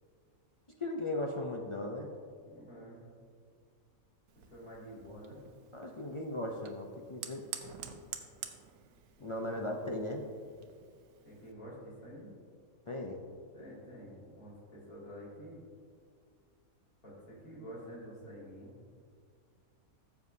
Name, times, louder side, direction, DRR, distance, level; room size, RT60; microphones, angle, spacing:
voice 1, 0.8-2.1 5.7-7.4 9.2-10.2 12.9-13.2, left 1 dB, 50° left, 0 dB, 0.3 m, -37 dB
voice 2, 2.5-3.0 4.5-5.4 9.4-9.5 11.2-12.3 13.5-15.6 17.0-18.8, equal, 75° left, -6 dB, 3.0 m, -49 dB
Fire, 4.3-11.5, right 9 dB, 85° right, 1.2 m, -49 dB
14.5 x 7.1 x 2.7 m, 2.1 s
omnidirectional pair, 1.5 m